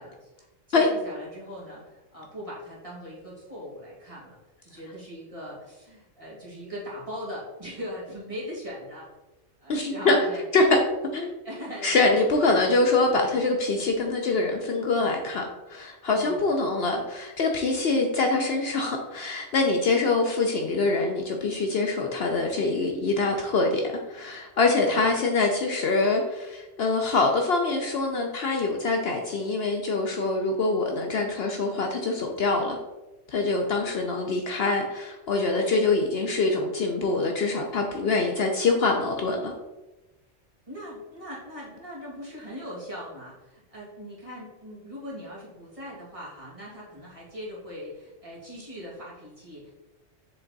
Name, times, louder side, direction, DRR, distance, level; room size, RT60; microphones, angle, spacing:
voice 1, 0.0-9.1 9.6-10.4 11.4-12.9 16.1-16.4 40.7-49.7, equal, 25° right, -7 dB, 2.1 m, -40 dB
voice 2, 9.7-10.2 10.5-10.8 11.1-11.4 11.8-32.8 33.3-39.5, left 3 dB, 60° left, 2 dB, 0.8 m, -24 dB
7.2 x 3.4 x 3.9 m, 1.1 s
omnidirectional pair, 1.3 m